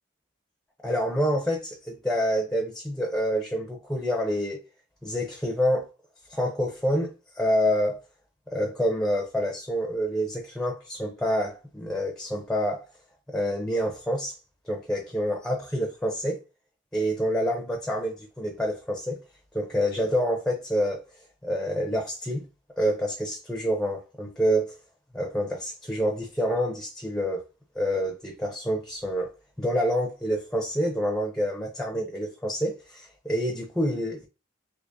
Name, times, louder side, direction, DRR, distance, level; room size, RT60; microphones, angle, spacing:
voice 1, 0.8-4.6 5.0-5.9 6.3-8.0 8.5-12.9 13.3-14.4 14.7-16.4 16.9-19.2 19.5-21.1 21.4-22.4 22.8-24.8 25.1-27.4 27.8-29.3 29.6-34.3, equal, 5° left, 0.4 m, -27 dB
3.4 x 3.1 x 2.6 m
head